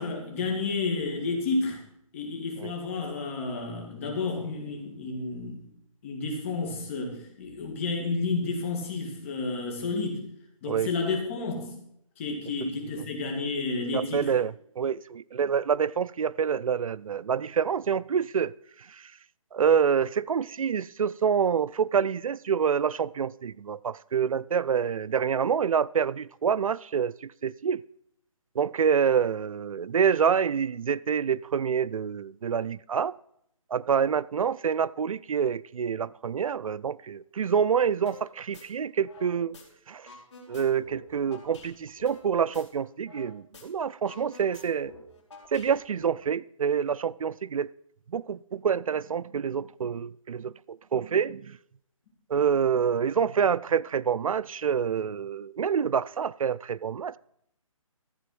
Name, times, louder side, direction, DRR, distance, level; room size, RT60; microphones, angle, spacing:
voice 1, 0.0-1.8 2.1-5.6 6.0-10.2 10.6-11.7 12.2-14.3, left 3 dB, 25° left, 2.4 m, -31 dB
voice 2, 13.9-18.5 18.9-19.1 19.5-27.8 28.6-33.1 33.7-39.6 39.9-40.1 40.5-44.9 45.5-47.7 48.1-51.6 52.3-57.2, right 7 dB, 75° right, 0.4 m, -27 dB
sound 1, 38.1-38.2 38.5-39.6 39.9-43.3 43.5-43.6 43.9-46.0, left 3 dB, 55° left, 3.8 m, -49 dB
14.0 x 7.8 x 5.9 m
hypercardioid pair, 170°, 18 cm